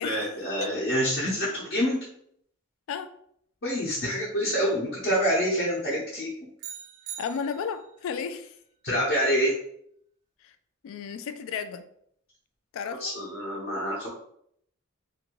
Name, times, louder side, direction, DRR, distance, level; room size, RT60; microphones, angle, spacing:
voice 1, 0.0-2.0 3.6-6.3 8.8-9.5 12.9-14.1, equal, 50° left, -7 dB, 0.8 m, -26 dB
sound 1, 6.6-8.0, right 9 dB, 70° right, 0.4 m, -42 dB
voice 2, 7.2-8.6 10.4-10.5 10.8-11.8 12.7-13.1, left 6 dB, 65° left, 10 dB, 0.3 m, -33 dB
2.6 x 2.6 x 2.9 m, 0.68 s
head